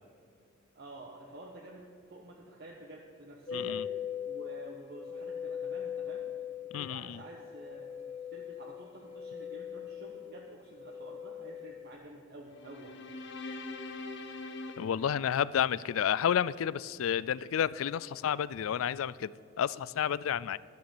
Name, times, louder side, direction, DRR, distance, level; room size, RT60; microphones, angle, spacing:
voice 1, 0.7-3.8 4.2-6.3 6.7-7.9 8.3-13.0, right 1 dB, 50° right, -2 dB, 1.2 m, -49 dB
voice 2, 3.5-3.8 6.7-7.2 14.8-19.3 19.6-20.6, left 9 dB, 75° left, 19 dB, 0.3 m, -30 dB
sound 1, 3.5-11.9, left 8 dB, 30° left, 0.7 m, -40 dB
sound 2, 12.5-15.9, left 2 dB, 55° left, 0.9 m, -43 dB
13.0 x 7.0 x 7.8 m, 2.2 s
head